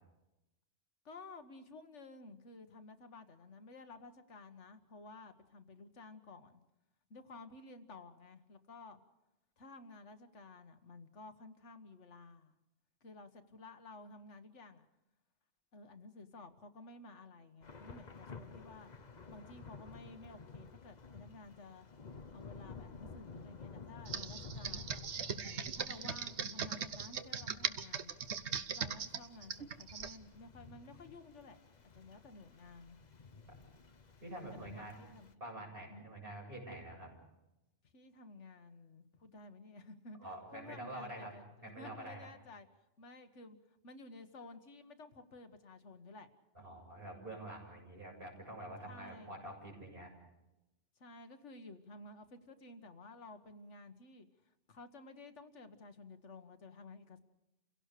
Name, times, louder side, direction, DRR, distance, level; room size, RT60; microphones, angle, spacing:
voice 1, 1.1-6.6 7.1-9.0 9.6-12.5 13.0-14.9 15.7-18.9 19.3-21.9 22.3-25.0 25.7-28.1 28.7-31.6 31.9-33.0 34.5-36.1 37.8-42.7 43.0-46.3 48.0-48.1 48.9-49.4 51.0-57.2, left 3 dB, 85° left, 8 dB, 1.7 m, -54 dB
Thunder / Rain, 17.6-35.3, left 4 dB, 40° left, 1.1 m, -53 dB
Computer keyboard, 24.1-30.2, right 6 dB, 75° right, 1.3 m, -39 dB
voice 2, 34.2-35.1 35.4-37.1 40.2-41.3 41.6-42.3 46.5-50.1, right 1 dB, 50° right, -2 dB, 7.9 m, -47 dB
29.5 x 17.0 x 6.7 m, 0.96 s
omnidirectional pair, 1.2 m